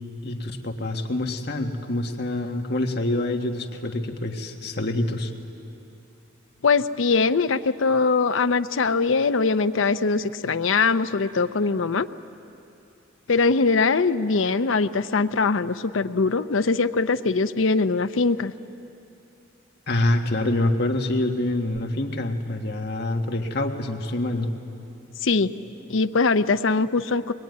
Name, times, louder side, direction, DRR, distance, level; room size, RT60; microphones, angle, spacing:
voice 1, 0.2-5.3 19.9-24.5, left 1 dB, 55° left, 3 dB, 1.6 m, -26 dB
voice 2, 6.6-12.1 13.3-18.5 25.2-25.5 25.9-27.3, left 4 dB, 80° left, 10 dB, 0.7 m, -22 dB
23.0 x 21.0 x 9.4 m, 2.7 s
head